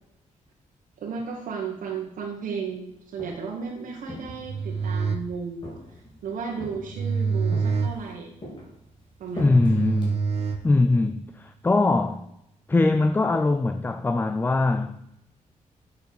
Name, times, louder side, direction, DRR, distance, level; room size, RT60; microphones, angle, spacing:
voice 1, 1.0-5.7 6.2-8.3 9.2-9.6, right 5 dB, 85° right, 1.4 m, -34 dB
Walk footsteps, 2.9-3.6 4.1-5.1 5.6-6.2 6.6-7.1 7.5-8.1 8.4-10.6, left 1 dB, 35° left, 3.5 m, -41 dB
sound 1, 4.2-11.2, right 5 dB, 50° right, 1.1 m, -28 dB
voice 2, 9.4-10.2 10.6-12.2 12.7-15.0, left 3 dB, 15° left, 0.4 m, -22 dB
8.3 x 6.8 x 6.5 m
wide cardioid pair, 140°, 13 cm